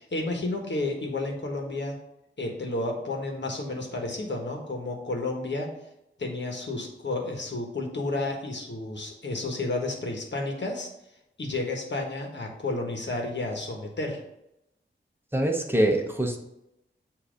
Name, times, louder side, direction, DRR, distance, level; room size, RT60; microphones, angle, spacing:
voice 1, 0.0-2.0 2.4-5.7 6.2-10.9 11.4-14.2, left 2 dB, 60° left, 1 dB, 1.3 m, -31 dB
voice 2, 15.3-16.4, right 1 dB, 10° right, 2 dB, 0.9 m, -24 dB
7.4 x 2.8 x 5.1 m, 0.85 s
wide cardioid pair, 90°, 20 cm